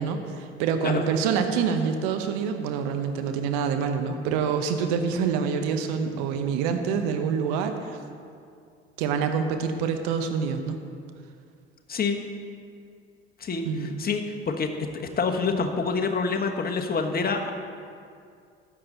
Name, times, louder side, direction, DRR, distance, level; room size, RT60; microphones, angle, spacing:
voice 1, 0.0-8.0 9.0-10.8 13.6-13.9, right 6 dB, 65° right, 6 dB, 1.0 m, -26 dB
voice 2, 13.4-14.7 14.9-17.5, left 4 dB, 30° left, 4 dB, 1.3 m, -27 dB
13.0 x 8.9 x 4.0 m, 2.3 s
figure-of-eight pair, 55°, 32 cm